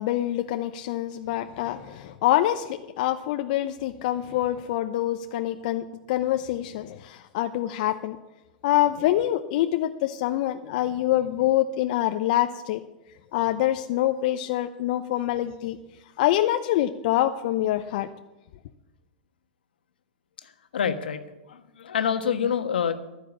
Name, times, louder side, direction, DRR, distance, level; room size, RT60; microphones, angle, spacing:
voice 1, 0.0-8.2 8.6-12.8 13.3-15.8 16.2-18.1, left 13 dB, 60° left, 7 dB, 0.7 m, -25 dB
voice 2, 20.4-21.2 21.5-22.9, left 7 dB, 80° left, 8 dB, 1.3 m, -27 dB
12.0 x 10.0 x 7.2 m, 1.0 s
hypercardioid pair, 110°, 5 cm